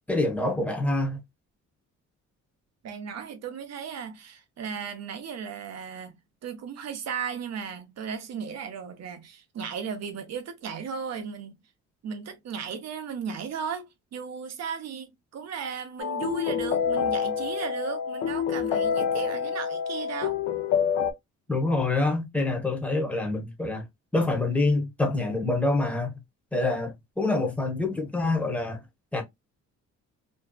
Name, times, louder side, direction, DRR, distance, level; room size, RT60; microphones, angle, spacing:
voice 1, 0.1-1.2 21.5-23.8 24.1-26.1 26.5-28.8 29.1-29.2, left 2 dB, 5° left, 0.9 m, -26 dB
voice 2, 2.8-6.1 6.4-11.6 12.0-20.4, right 6 dB, 60° right, 0.7 m, -36 dB
sound 1, 16.0-21.1, left 7 dB, 70° left, 0.6 m, -27 dB
2.6 x 2.3 x 2.3 m
cardioid pair, 90°, 30 cm